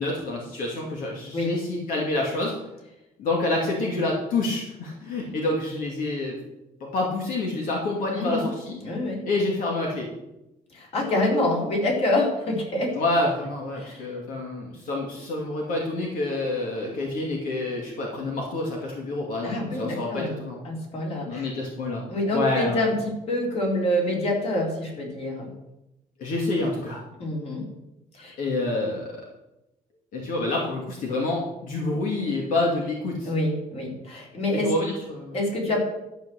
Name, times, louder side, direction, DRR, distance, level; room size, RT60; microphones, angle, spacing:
voice 1, 0.0-2.5 3.2-6.4 6.9-8.8 9.2-10.1 13.0-20.6 21.3-22.0 22.3-22.8 26.2-27.0 28.4-29.1 30.1-33.3 34.6-35.4, left 2 dB, 70° left, -2 dB, 2.7 m, -27 dB
voice 2, 8.1-8.5 8.8-9.2 10.7-13.0 13.8-14.1 19.4-20.4 20.6-21.5 22.1-25.5 27.2-27.7 28.1-28.4 33.2-34.7 35.3-35.8, left 1 dB, 45° left, -1 dB, 4.0 m, -26 dB
13.0 x 6.3 x 7.8 m, 0.92 s
cardioid pair, 155°, 14 cm